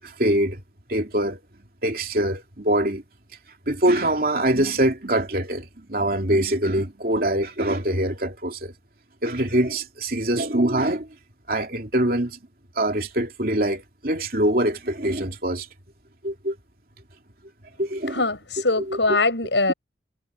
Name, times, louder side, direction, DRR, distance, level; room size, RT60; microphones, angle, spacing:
voice 1, 0.0-0.6 0.9-1.4 1.8-3.0 3.7-8.7 9.2-11.1 11.5-12.4 12.8-15.7 16.2-16.5 17.8-18.2 18.9-19.0, right 1 dB, 50° right, 3.1 m, -24 dB
voice 2, 18.1-19.7, left 3 dB, 80° left, 7.4 m, -22 dB
head